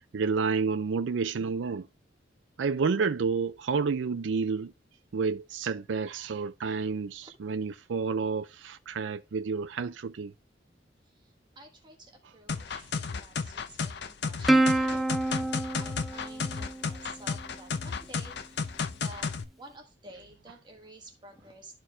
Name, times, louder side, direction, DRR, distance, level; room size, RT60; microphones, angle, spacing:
voice 1, 0.1-1.9 2.6-4.7 5.1-10.3 12.7-12.9, right 5 dB, 80° right, 0.4 m, -30 dB
voice 2, 11.1-19.3 19.6-21.7, right 1 dB, 25° right, 1.3 m, -51 dB
sound 1, 12.5-19.4, left 5 dB, 65° left, 0.7 m, -33 dB
Plucked string instrument, 14.5-17.2, right 1 dB, ahead, 0.5 m, -27 dB
13.0 x 4.5 x 2.2 m
head